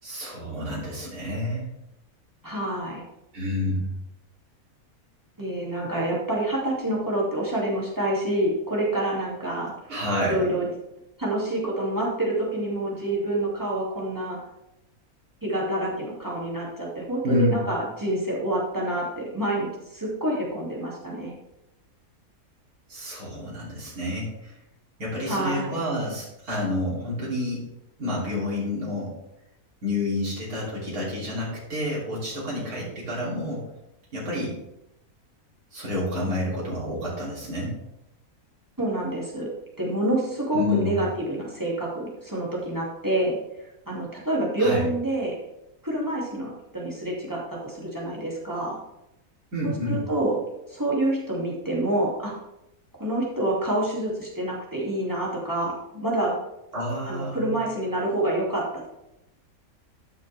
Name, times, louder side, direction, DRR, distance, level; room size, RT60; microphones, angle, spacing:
voice 1, 0.0-1.6 3.3-3.9 9.9-10.6 17.2-17.7 22.9-24.5 25.0-27.6 28.0-29.1 29.8-33.6 34.1-34.6 35.7-37.7 40.5-41.0 44.6-44.9 49.5-50.0 56.7-57.6, left 1 dB, 80° right, -7 dB, 3.5 m, -29 dB
voice 2, 2.4-3.0 5.4-9.7 10.3-10.7 11.2-14.4 15.4-21.3 25.3-25.8 38.8-39.5 39.8-43.4 43.9-45.4 45.8-48.8 49.6-50.4 50.7-52.3 53.0-56.3 57.1-58.9, right 1 dB, 15° right, -5 dB, 2.6 m, -27 dB
13.5 x 6.3 x 3.4 m, 0.89 s
omnidirectional pair, 1.5 m